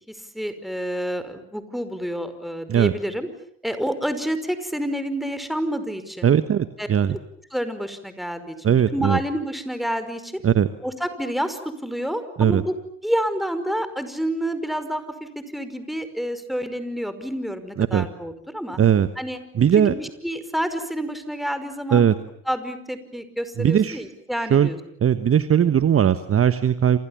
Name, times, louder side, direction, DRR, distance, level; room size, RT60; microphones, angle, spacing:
voice 1, 0.0-3.3 3.6-6.3 6.8-6.9 7.5-10.4 10.8-12.7 13.0-18.8 19.2-19.4 19.8-22.1 22.5-24.8, equal, ahead, 10 dB, 5.3 m, -29 dB
voice 2, 6.2-7.2 8.6-9.2 10.4-10.7 12.4-12.6 17.8-18.1 18.8-19.1 19.5-19.9 21.9-22.2 23.6-24.0 24.5-24.7 25.0-27.0, right 9 dB, 35° right, 12 dB, 1.4 m, -18 dB
29.5 x 28.0 x 7.3 m, 0.66 s
hypercardioid pair, 65°, 40 cm